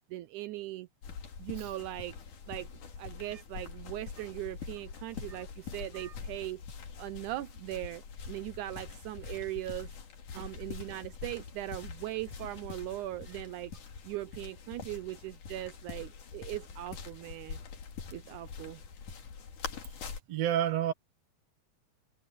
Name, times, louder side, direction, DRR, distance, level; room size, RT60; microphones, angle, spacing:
voice 1, 0.1-0.9 1.4-2.2 2.5-2.7 3.0-6.6 7.0-9.9 10.3-13.7 14.0-17.6 18.1-18.8, right 16 dB, 80° right, 2.1 m, -39 dB
sound 1, 1.0-20.2, left 6 dB, 75° left, 4.1 m, -44 dB
voice 2, 20.3-20.9, right 11 dB, 60° right, 2.4 m, -30 dB
omnidirectional pair, 3.6 m